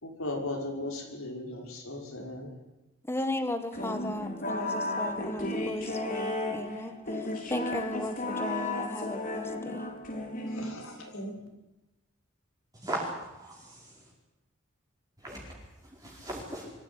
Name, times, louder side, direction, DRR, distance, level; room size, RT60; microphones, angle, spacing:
voice 1, 0.0-2.5 10.5-11.3, left 1 dB, 85° left, 1 dB, 5.8 m, -37 dB
voice 2, 3.1-6.9 7.5-9.9, left 1 dB, 10° left, 9 dB, 1.7 m, -36 dB
sound 1, 3.7-11.1, left 2 dB, 40° left, 3.9 m, -34 dB
voice 3, 12.7-14.1 15.2-16.7, right 1 dB, 15° right, -4 dB, 4.8 m, -39 dB
24.0 x 15.5 x 9.8 m, 0.99 s
head